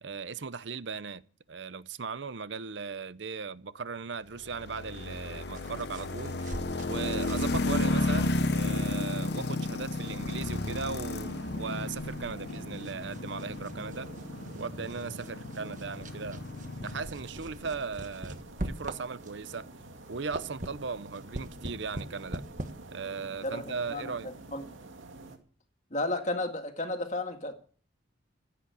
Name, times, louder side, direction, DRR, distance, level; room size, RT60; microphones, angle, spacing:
voice 1, 0.0-1.2 1.5-6.4 6.9-14.1 14.5-16.5 16.8-19.7 20.1-22.4 22.9-24.3, right 5 dB, 70° right, 0.7 m, -38 dB
Go-cart in Sugar City CO, 4.4-17.6, left 2 dB, 55° left, 0.9 m, -33 dB
sound 1, 5.5-19.5 19.9-22.7, right 1 dB, 40° right, 1.4 m, -43 dB
sound 2, 8.0-25.4, right 2 dB, 90° right, 2.4 m, -48 dB
voice 2, 23.4-24.6 25.9-27.5, left 2 dB, 40° left, 2.0 m, -33 dB
15.0 x 8.7 x 8.2 m
head